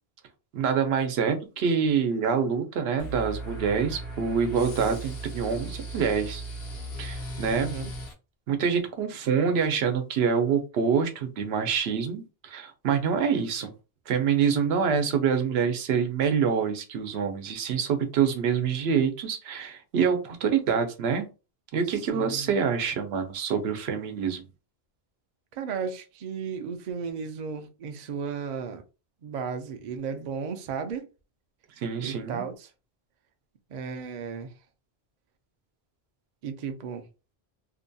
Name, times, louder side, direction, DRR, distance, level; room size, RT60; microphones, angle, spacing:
voice 1, 0.5-6.4 7.0-7.7 8.5-13.7 14.1-21.3 21.7-24.4 31.8-32.4, right 6 dB, 85° right, 0.8 m, -26 dB
sound 1, 3.0-8.1, right 2 dB, 70° left, 1.0 m, -37 dB
voice 2, 7.5-7.9 22.1-22.5 25.5-28.8 29.2-31.1 32.0-32.7 33.7-34.5 36.4-37.0, right 6 dB, 55° right, 0.5 m, -34 dB
2.7 x 2.2 x 2.6 m
omnidirectional pair, 1.0 m